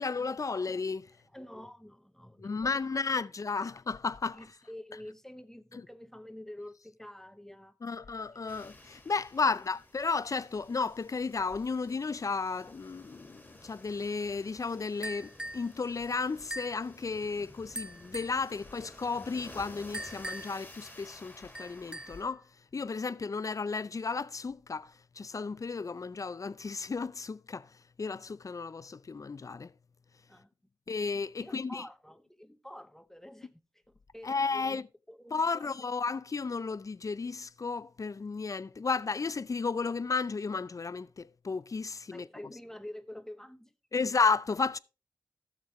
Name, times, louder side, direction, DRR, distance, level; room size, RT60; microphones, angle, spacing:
voice 1, 0.0-1.1 2.4-4.4 7.8-22.5 22.7-27.7 28.0-29.7 30.9-31.8 34.2-34.9 35.3-42.3 43.9-44.8, left 4 dB, 50° left, 0.5 m, -33 dB
voice 2, 1.2-2.7 3.0-3.1 4.3-7.8 9.4-9.6 30.3-30.5 31.4-34.8 35.1-35.7 42.1-44.0, left 1 dB, 5° left, 0.9 m, -48 dB
sound 1, 8.5-22.2, left 1 dB, 20° left, 2.1 m, -53 dB
sound 2, 15.0-15.7 16.5-16.8 17.7-18.4 19.9-20.6 21.5-22.3, right 1 dB, 10° right, 0.4 m, -41 dB
12.5 x 7.4 x 3.1 m
cardioid pair, 40°, 7 cm